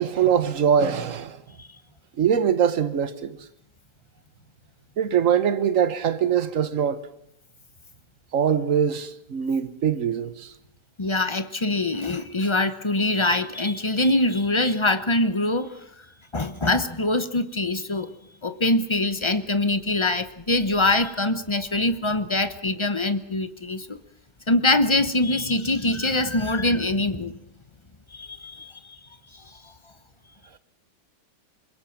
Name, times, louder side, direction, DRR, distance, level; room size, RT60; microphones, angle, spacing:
voice 1, 0.0-1.4 2.2-3.4 5.0-7.1 8.3-10.5, right 8 dB, 50° right, 1.4 m, -22 dB
voice 2, 11.0-15.8 16.3-18.1 18.4-24.0 24.5-27.4 28.1-29.0 29.3-29.6, left 2 dB, 25° left, 0.7 m, -24 dB
26.5 x 22.0 x 6.0 m
omnidirectional pair, 1.9 m